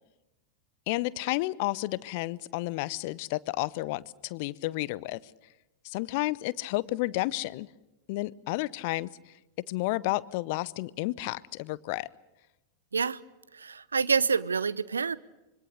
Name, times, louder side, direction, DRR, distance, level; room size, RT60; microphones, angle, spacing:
voice 1, 0.9-5.3 5.8-7.7 8.1-9.3 9.7-12.1, left 19 dB, 50° left, 21 dB, 0.7 m, -31 dB
voice 2, 13.5-15.2, right 5 dB, 75° right, 19 dB, 0.7 m, -27 dB
26.0 x 23.5 x 6.6 m, 1.0 s
figure-of-eight pair, 90°, 0 cm